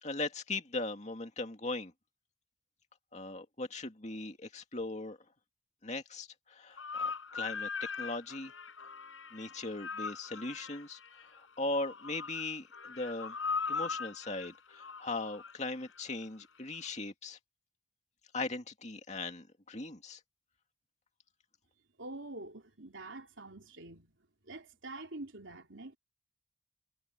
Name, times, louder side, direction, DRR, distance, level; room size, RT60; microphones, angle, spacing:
voice 1, 0.0-1.9 3.1-5.2 5.8-7.7 8.0-8.5 9.3-11.0 11.3-13.3 13.7-17.4 18.3-20.2, left 2 dB, 35° left, 2.4 m, -39 dB
sound 1, 6.8-16.2, left 5 dB, 90° left, 6.6 m, -40 dB
voice 2, 22.0-24.1 24.4-26.0, right 2 dB, 80° right, 3.6 m, -46 dB
head